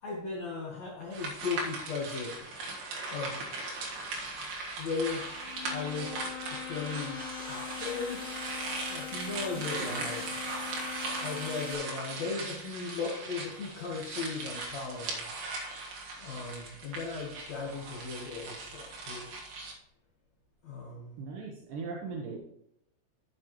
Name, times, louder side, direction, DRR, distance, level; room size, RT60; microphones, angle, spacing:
voice 1, 0.0-2.5 3.1-3.5 4.7-8.3 8.9-10.2 11.1-15.3 16.2-19.3 20.6-21.2, left 4 dB, 75° left, -2 dB, 1.5 m, -37 dB
sound 1, 1.1-19.7, right 3 dB, 55° right, 2.3 m, -39 dB
sound 2, 5.2-11.7, left 9 dB, 55° left, 3.2 m, -42 dB
voice 2, 9.6-10.3 21.2-22.4, right 4 dB, 75° right, -1 dB, 1.9 m, -40 dB
12.5 x 8.0 x 3.1 m, 0.78 s
omnidirectional pair, 5.3 m